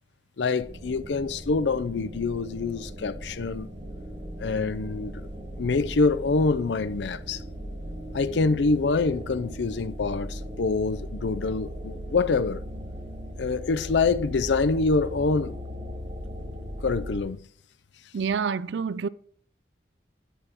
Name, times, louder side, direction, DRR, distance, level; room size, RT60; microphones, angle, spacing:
voice 1, 0.4-3.7 4.4-5.3 5.6-7.4 8.1-12.6 13.4-15.6 16.8-17.4, left 4 dB, 90° left, 0.5 m, -25 dB
sound 1, 0.6-17.2, equal, 45° right, 3.4 m, -38 dB
voice 2, 18.1-19.1, right 6 dB, 90° right, 0.4 m, -27 dB
10.0 x 8.9 x 2.9 m
head